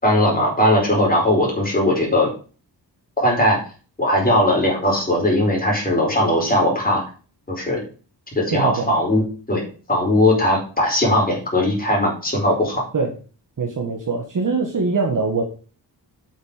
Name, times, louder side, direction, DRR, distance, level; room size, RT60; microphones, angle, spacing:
voice 1, 0.0-2.3 3.2-3.6 4.0-7.0 7.5-7.8 8.4-9.2 9.5-9.6 9.9-12.8, left 1 dB, 20° left, -2 dB, 4.6 m, -19 dB
voice 2, 8.5-9.0 12.9-13.1 13.6-15.4, right 4 dB, 45° right, 1 dB, 1.6 m, -22 dB
8.1 x 6.5 x 5.1 m, 0.38 s
wide cardioid pair, 110°, 42 cm